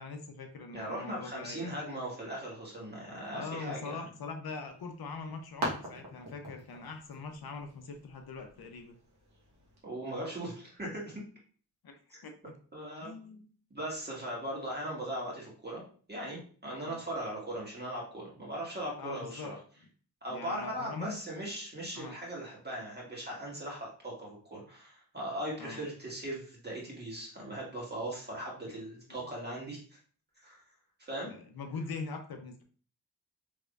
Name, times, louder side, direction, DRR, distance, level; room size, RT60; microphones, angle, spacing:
voice 1, 0.0-1.8 3.3-9.0 11.8-12.5 13.0-13.5 16.7-17.0 19.0-19.5 20.3-21.2 21.9-22.2 25.6-25.9 28.7-28.8 31.3-32.6, left 4 dB, 70° left, 5 dB, 0.6 m, -42 dB
voice 2, 0.7-3.9 9.8-11.2 12.7-13.1 13.7-15.8 16.1-19.5 20.2-30.0 30.4-30.6 31.0-31.3, right 1 dB, 25° right, -4 dB, 1.7 m, -39 dB
sound 1, 4.7-9.8, right 1 dB, 75° right, 1.3 m, -43 dB
3.6 x 3.1 x 2.4 m, 0.43 s
cardioid pair, 60°, 39 cm